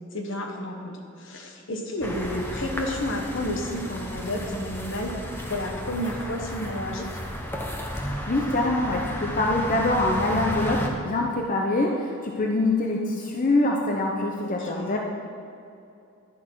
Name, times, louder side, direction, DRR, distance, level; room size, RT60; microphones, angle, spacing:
voice 1, 0.1-7.1 14.4-15.0, left 1 dB, 65° left, 2 dB, 1.4 m, -31 dB
sound 1, 2.0-10.9, equal, 10° left, 1.1 m, -33 dB
voice 2, 8.0-15.0, left 2 dB, 40° left, 0 dB, 0.8 m, -24 dB
11.0 x 11.0 x 3.9 m, 2.6 s
head